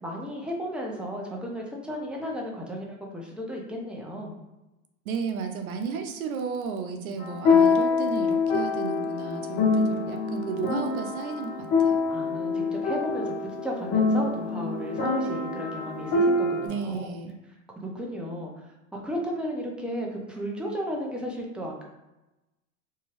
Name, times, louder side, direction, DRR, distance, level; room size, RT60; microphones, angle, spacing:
voice 1, 0.0-4.3 6.9-7.2 12.1-17.1 17.8-18.5 18.9-21.8, equal, ahead, -2 dB, 0.5 m, -34 dB
voice 2, 5.1-12.0 16.6-17.4, right 5 dB, 80° right, 5 dB, 0.6 m, -33 dB
sound 1, 7.2-16.7, left 4 dB, 45° left, 0.8 m, -25 dB
2.7 x 2.3 x 3.1 m, 0.99 s
hypercardioid pair, 95°, 42 cm